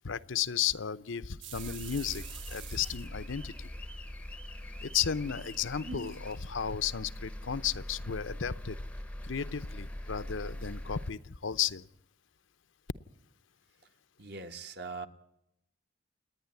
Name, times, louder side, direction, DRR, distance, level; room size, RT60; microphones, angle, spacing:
voice 1, 0.0-2.2 2.5-3.7 4.8-8.8 9.2-11.9, left 8 dB, 90° left, 13 dB, 0.8 m, -34 dB
sound 1, 1.4-3.8 4.2-6.5, right 7 dB, 75° right, 1.6 m, -47 dB
sound 2, 1.5-11.1, left 1 dB, 5° left, 0.7 m, -42 dB
voice 2, 14.2-15.1, right 4 dB, 55° right, 7 dB, 1.5 m, -41 dB
29.0 x 9.9 x 9.6 m, 0.82 s
head